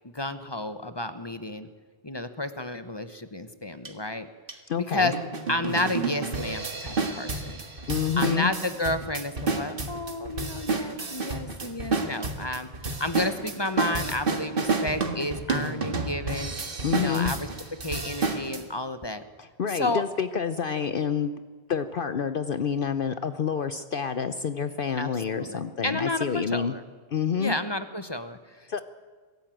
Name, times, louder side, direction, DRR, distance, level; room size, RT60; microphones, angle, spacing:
voice 1, 0.0-1.7 2.0-4.3 4.9-5.1 5.5-7.6 8.2-12.7 13.0-16.5 16.9-17.5 17.8-19.2 19.7-20.0 25.0-26.8 27.4-28.8, left 2 dB, 25° left, 10 dB, 1.0 m, -31 dB
sound 1, 3.8-3.9 4.5-4.6 5.1-18.6, right 3 dB, 55° right, 1.8 m, -30 dB
voice 2, 4.7-5.1 7.9-8.5 16.8-17.3 19.4-21.4 21.7-26.7 27.1-27.6 28.7-28.8, left 7 dB, 55° left, 11 dB, 0.9 m, -28 dB
23.0 x 13.5 x 9.0 m, 1.5 s
omnidirectional pair, 1.1 m